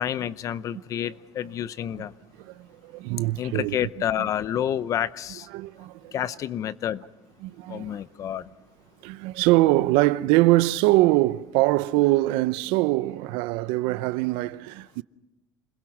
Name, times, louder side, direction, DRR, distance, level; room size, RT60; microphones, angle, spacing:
voice 1, 0.0-2.1 3.4-5.5 6.1-7.0 7.7-8.5, left 10 dB, 40° left, 0.7 m, -29 dB
voice 2, 2.4-3.9 4.2-4.3 5.5-6.1 7.4-8.0 9.0-15.0, right 18 dB, 85° right, 0.7 m, -23 dB
28.0 x 21.5 x 6.0 m
cardioid pair, 160°, 9 cm